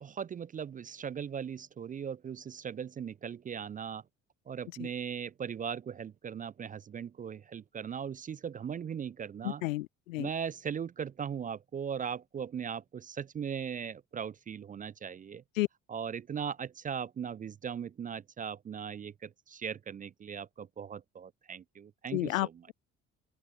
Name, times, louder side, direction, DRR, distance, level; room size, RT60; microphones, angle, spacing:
voice 1, 0.0-4.0 4.5-9.6 10.2-15.4 15.9-22.7, right 7 dB, 20° right, 0.4 m, -39 dB
voice 2, 9.4-10.3 15.6-15.7 22.1-22.7, left 18 dB, 80° left, 0.6 m, -32 dB
open air
figure-of-eight pair, 50°, 39 cm